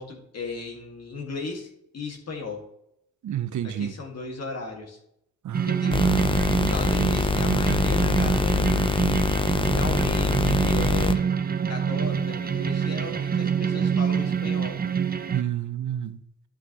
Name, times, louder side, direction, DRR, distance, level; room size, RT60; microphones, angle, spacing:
voice 1, 0.0-2.7 3.6-5.0 5.6-6.1 6.6-9.3 9.6-11.3 11.7-14.8, left 3 dB, 55° left, 2.0 m, -36 dB
voice 2, 3.2-3.9 5.4-6.3 15.3-16.2, right 10 dB, 70° right, 0.7 m, -30 dB
sound 1, 5.5-15.4, right 7 dB, 30° right, 0.6 m, -26 dB
sound 2, 5.9-11.2, left 4 dB, 15° left, 0.4 m, -24 dB
11.5 x 5.7 x 3.0 m
cardioid pair, 95°, 31 cm